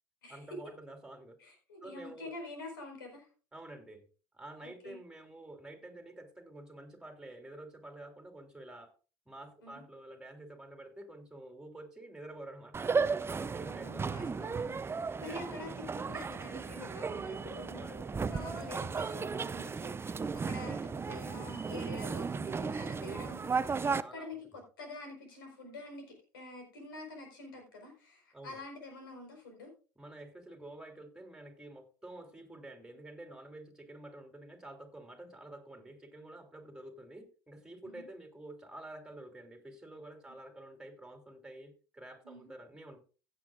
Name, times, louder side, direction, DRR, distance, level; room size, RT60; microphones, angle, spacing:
voice 1, 0.3-1.4 1.8-2.3 3.5-4.0 4.3-8.9 9.2-14.5 15.1-15.6 17.7-18.2 23.7-24.4 28.3-28.6 29.9-43.0, right 1 dB, 5° right, 4 dB, 3.4 m, -49 dB
voice 2, 1.4-3.3 4.6-5.0 9.6-9.8 13.6-14.8 15.2-26.1 26.3-29.7 37.9-38.0 42.2-42.5, left 2 dB, 85° left, 4 dB, 4.6 m, -47 dB
sound 1, 12.7-24.0, right 5 dB, 20° right, 0.6 m, -35 dB
16.0 x 9.2 x 2.5 m, 0.34 s
hypercardioid pair, 70°, 11 cm